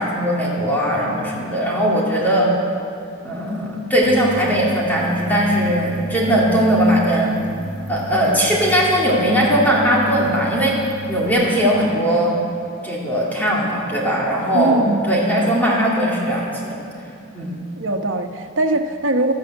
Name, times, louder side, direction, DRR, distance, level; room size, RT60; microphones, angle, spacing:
voice 1, 0.0-2.5 3.2-7.4 7.9-10.8 11.1-12.3 12.8-16.8 17.3-17.5, equal, 10° left, -5 dB, 2.6 m, -19 dB
sound 1, 4.0-11.3, right 1 dB, 50° right, 1.4 m, -32 dB
voice 2, 14.5-15.3 17.8-19.3, right 1 dB, 90° right, 6 dB, 1.1 m, -21 dB
13.0 x 12.5 x 8.0 m, 2.7 s
head